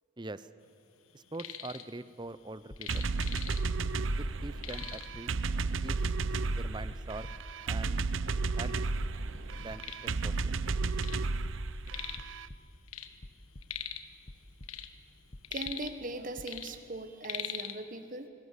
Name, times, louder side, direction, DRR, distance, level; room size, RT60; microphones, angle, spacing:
voice 1, 0.2-0.5 1.1-3.1 4.2-5.4 5.8-6.1 6.5-7.3 7.7-8.0 8.6-8.8 9.6-10.5, right 2 dB, 20° right, 14 dB, 0.7 m, -43 dB
sound 1, 1.1-1.9 2.2-3.9 4.2-4.3 4.6-5.2 6.0-6.1 6.7-6.8 7.5-7.6 7.9-8.7 9.2-11.3 11.5-12.3 12.6-14.2 14.5-16.1 16.4-17.8, left 10 dB, 85° left, 1.5 m, -42 dB
sound 2, 2.7-3.3 3.7-4.5 4.8-6.5 6.9-7.7 8.0-8.7 9.0-9.7 10.0-10.7 11.1-11.9 12.1-12.8 13.2-14.0 14.3-15.0 15.3-16.1 16.3-16.6, left 1 dB, 35° left, 1.0 m, -50 dB
sound 3, 2.9-12.5, right 3 dB, 65° right, 0.7 m, -33 dB
voice 2, 15.5-18.3, right 2 dB, 40° right, 9 dB, 1.2 m, -40 dB
27.0 x 21.0 x 8.2 m, 2.7 s
head